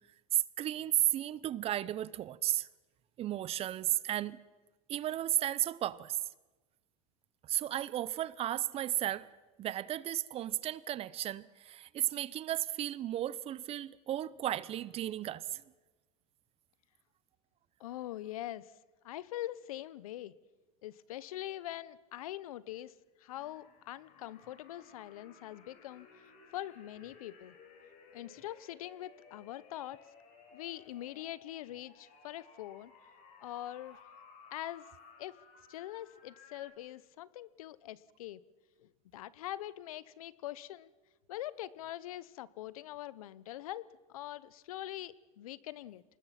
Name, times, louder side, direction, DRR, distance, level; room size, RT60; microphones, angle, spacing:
voice 1, 0.3-2.7 3.2-4.4 4.9-6.2 7.4-9.3 9.6-15.6, right 12 dB, 35° right, 0.7 m, -34 dB
voice 2, 17.8-18.7 19.0-20.3 20.8-22.9 23.2-26.1 26.5-27.6 28.1-30.0 30.5-32.9 33.4-34.0 34.5-34.8 35.2-35.4 35.7-38.4 38.8-40.9 41.3-46.0, left 14 dB, 85° left, 0.9 m, -43 dB
sound 1, 23.3-36.7, left 5 dB, 45° left, 4.8 m, -58 dB
25.0 x 20.0 x 5.9 m
supercardioid pair, 120°, 18 cm